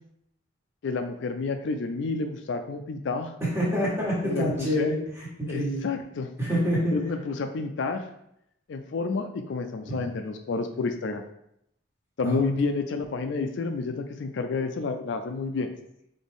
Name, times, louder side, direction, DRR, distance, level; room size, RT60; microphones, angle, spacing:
voice 1, 0.8-3.3 4.2-4.9 5.5-6.3 6.9-8.1 8.7-11.2 12.2-15.7, left 4 dB, 65° left, 6 dB, 0.4 m, -30 dB
voice 2, 3.4-5.8 6.4-7.0 9.9-10.0 12.2-12.4, equal, 15° right, -6 dB, 1.5 m, -27 dB
4.1 x 3.4 x 3.5 m, 0.77 s
head